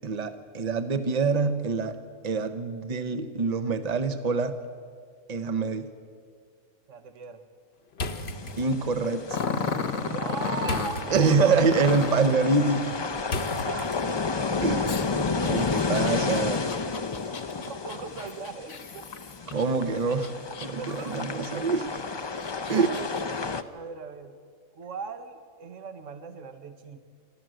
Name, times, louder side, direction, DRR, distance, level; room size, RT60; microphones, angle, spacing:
voice 1, 0.0-2.0 2.2-4.6 5.3-5.9 8.6-9.4 11.1-13.0 14.6-16.7 19.5-20.3 20.6-22.0 22.7-22.9, right 4 dB, 35° right, 10 dB, 1.0 m, -25 dB
voice 2, 6.9-7.4 10.0-11.4 13.4-13.8 17.5-19.1 20.8-21.5 22.7-23.1 23.7-24.4 24.8-27.0, right 5 dB, 65° right, 10 dB, 1.4 m, -38 dB
sound 1, 7.9-14.4, left 2 dB, 50° left, 1.2 m, -38 dB
sound 2, 8.2-23.6, left 4 dB, 35° left, 0.4 m, -32 dB
Growling, 9.3-11.0 11.6-12.2 14.9-19.6 20.1-20.9 21.4-21.5 22.2-23.2, left 5 dB, 75° left, 1.7 m, -33 dB
27.5 x 12.5 x 7.8 m, 2.1 s
omnidirectional pair, 1.4 m